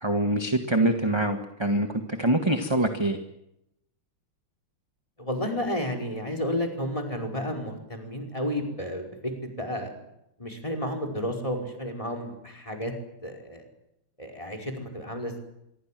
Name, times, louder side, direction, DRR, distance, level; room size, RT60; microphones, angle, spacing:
voice 1, 0.0-3.2, right 1 dB, 15° right, 6 dB, 1.7 m, -25 dB
voice 2, 5.2-9.0 9.4-10.0 10.4-12.9 13.2-13.6 14.2-15.4, equal, 15° left, 5 dB, 5.3 m, -32 dB
26.0 x 23.5 x 7.8 m, 0.82 s
omnidirectional pair, 2.4 m